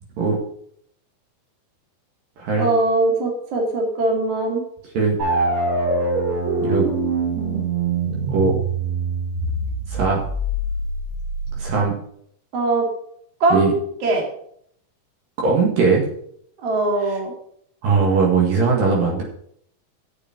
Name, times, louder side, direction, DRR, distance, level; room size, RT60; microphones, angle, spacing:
voice 1, 2.6-4.6 12.5-12.9 13.4-13.7 14.0-14.2 16.6-17.3, right 2 dB, 45° right, 0 dB, 3.0 m, -20 dB
sound 1, 5.2-11.8, right 2 dB, 85° right, 4.8 m, -24 dB
voice 2, 9.9-10.2 11.6-11.9 13.5-13.7 15.4-16.0 17.8-19.2, right 4 dB, 70° right, -2 dB, 3.6 m, -19 dB
7.5 x 7.4 x 7.1 m, 0.68 s
omnidirectional pair, 4.3 m